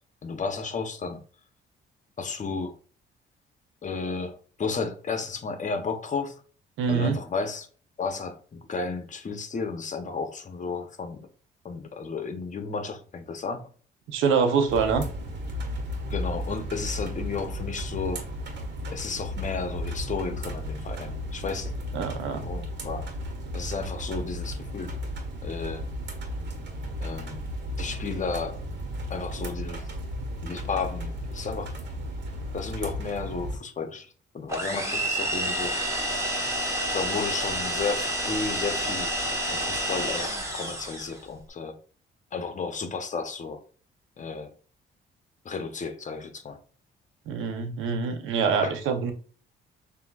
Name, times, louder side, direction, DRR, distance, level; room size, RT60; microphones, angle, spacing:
voice 1, 0.2-1.2 2.2-2.7 3.8-6.3 6.9-7.7 8.0-11.2 11.6-13.6 16.1-18.2 18.9-21.7 22.4-23.1 23.5-24.9 25.4-25.8 27.0-27.4 27.8-28.6 29.1-29.8 30.4-31.8 32.5-34.1 34.3-35.8 36.9-39.1 39.5-41.8 42.3-43.6 44.2-44.5 45.4-46.6 48.6-48.7, left 4 dB, 40° left, 0.9 m, -33 dB
voice 2, 6.8-7.2 14.1-15.1 21.9-22.5 47.3-49.1, right 5 dB, 85° right, 0.8 m, -25 dB
sound 1, 14.7-33.6, equal, 65° right, 1.4 m, -34 dB
sound 2, 34.5-41.2, right 1 dB, 15° right, 1.2 m, -29 dB
6.8 x 2.7 x 2.4 m
cardioid pair, 90°, 20 cm